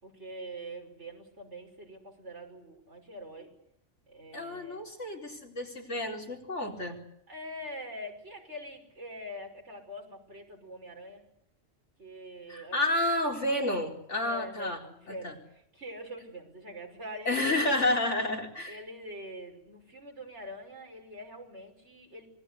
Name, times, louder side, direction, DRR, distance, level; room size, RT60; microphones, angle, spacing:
voice 1, 0.0-3.5 4.1-4.8 7.3-11.2 12.0-12.8 14.2-18.2 18.7-22.3, equal, 65° right, 3 dB, 6.0 m, -44 dB
voice 2, 4.3-7.0 12.5-14.8 15.1-15.3 17.2-18.8, left 1 dB, 75° left, 1 dB, 4.8 m, -30 dB
26.5 x 21.0 x 8.3 m, 0.74 s
omnidirectional pair, 1.2 m